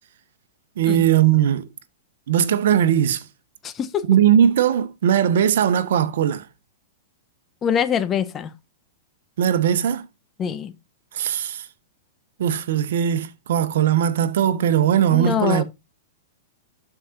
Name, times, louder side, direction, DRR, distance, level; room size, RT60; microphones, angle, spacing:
voice 1, 0.8-1.7 2.3-3.2 4.1-6.4 9.4-10.1 11.1-11.7 12.4-15.6, right 9 dB, 65° right, 1.0 m, -19 dB
voice 2, 3.6-4.1 7.6-8.5 10.4-10.7 15.1-15.6, left 8 dB, 25° left, 0.9 m, -24 dB
12.5 x 4.9 x 2.5 m
hypercardioid pair, 115°, 0 cm